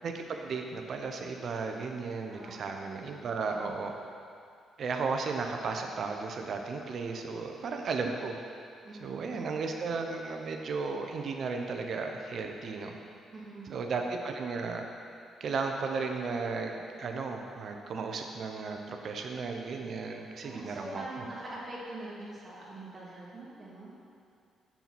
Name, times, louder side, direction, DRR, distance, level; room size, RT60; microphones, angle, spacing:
voice 1, 0.0-3.9 4.8-8.4 9.0-12.9 13.6-14.9 15.4-21.3, right 4 dB, 60° right, 3 dB, 0.9 m, -35 dB
voice 2, 2.3-2.7 3.5-3.9 8.8-9.6 13.3-13.8 20.4-23.9, right 2 dB, 30° right, -7 dB, 1.9 m, -44 dB
6.9 x 5.8 x 6.0 m, 2.4 s
cardioid pair, 90°, 0 cm